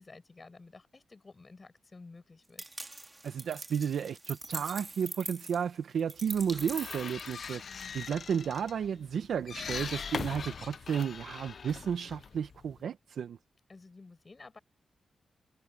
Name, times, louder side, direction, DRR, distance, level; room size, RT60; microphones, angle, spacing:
voice 1, 0.0-2.6 13.7-14.6, left 3 dB, 30° left, 5.8 m, -52 dB
sound 1, 2.6-7.8, right 2 dB, 20° right, 1.8 m, -43 dB
voice 2, 3.2-7.6 7.9-13.4, right 7 dB, 80° right, 0.8 m, -33 dB
sound 2, 6.3-12.8, left 6 dB, 55° left, 0.5 m, -41 dB
cardioid pair, 105°, 0 cm